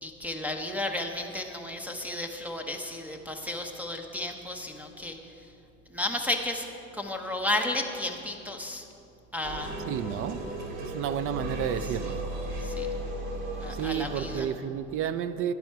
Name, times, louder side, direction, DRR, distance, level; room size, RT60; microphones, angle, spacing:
voice 1, 0.0-5.2 5.9-6.7 6.9-8.8 9.3-9.8 12.6-12.9 13.6-14.5, left 1 dB, 5° right, 4 dB, 0.9 m, -33 dB
sound 1, 9.4-14.4, right 1 dB, 55° right, 2.2 m, -35 dB
voice 2, 9.9-10.4 10.8-12.2 13.7-15.5, right 9 dB, 35° right, 13 dB, 0.4 m, -31 dB
11.0 x 10.5 x 4.6 m, 2.6 s
hypercardioid pair, 95°, 43 cm